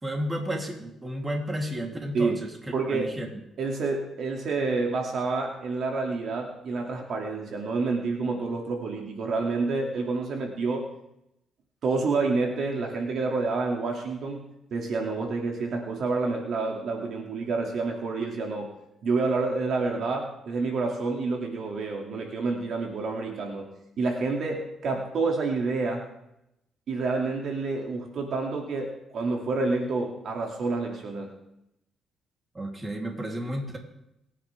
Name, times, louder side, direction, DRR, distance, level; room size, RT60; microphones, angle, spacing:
voice 1, 0.0-3.3 32.5-33.8, equal, 20° right, 0 dB, 3.5 m, -32 dB
voice 2, 2.7-3.1 3.6-10.9 11.8-14.4 14.7-18.7 19.0-23.7 24.0-26.0 26.9-31.3, right 3 dB, 65° right, 1 dB, 2.6 m, -28 dB
27.5 x 10.0 x 3.6 m, 0.83 s
cardioid pair, 90°, 0 cm